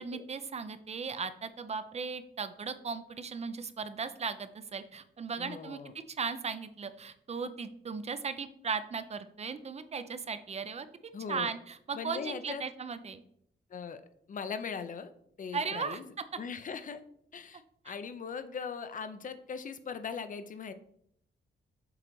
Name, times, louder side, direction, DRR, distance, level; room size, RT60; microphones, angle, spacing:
voice 1, 0.0-5.8 6.1-10.9 11.3-13.2 15.5-16.0 17.9-18.0, right 5 dB, 35° right, 11 dB, 0.5 m, -37 dB
voice 2, 5.4-5.9 11.1-11.5 11.9-12.6 13.7-14.0 14.3-15.1 15.4-16.0 16.4-17.0 17.3-20.7, left 6 dB, 45° left, 11 dB, 0.6 m, -39 dB
7.6 x 3.9 x 4.6 m, 0.70 s
wide cardioid pair, 125°, 19 cm